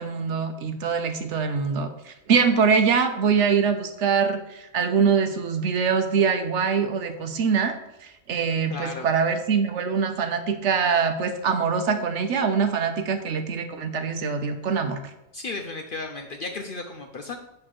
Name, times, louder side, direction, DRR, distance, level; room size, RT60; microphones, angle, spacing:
voice 1, 0.0-15.0, right 6 dB, 65° right, 7 dB, 1.0 m, -24 dB
voice 2, 8.7-9.1 15.3-17.4, left 3 dB, 55° left, 4 dB, 0.6 m, -34 dB
8.0 x 3.3 x 5.9 m, 0.86 s
omnidirectional pair, 1.4 m